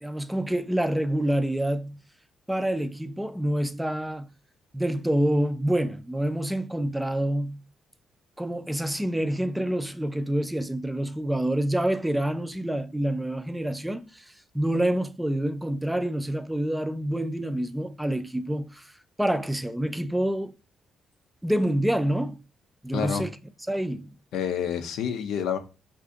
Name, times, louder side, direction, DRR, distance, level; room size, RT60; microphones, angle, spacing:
voice 1, 0.0-2.0 2.5-4.3 4.7-7.6 8.4-14.2 14.5-18.9 19.2-20.5 21.4-22.4 22.8-23.4 23.7-24.2, right 1 dB, 5° right, 0.3 m, -27 dB
voice 2, 22.9-23.2 24.3-25.6, left 8 dB, 85° left, 0.5 m, -28 dB
2.6 x 2.4 x 3.6 m
cardioid pair, 90°, 0 cm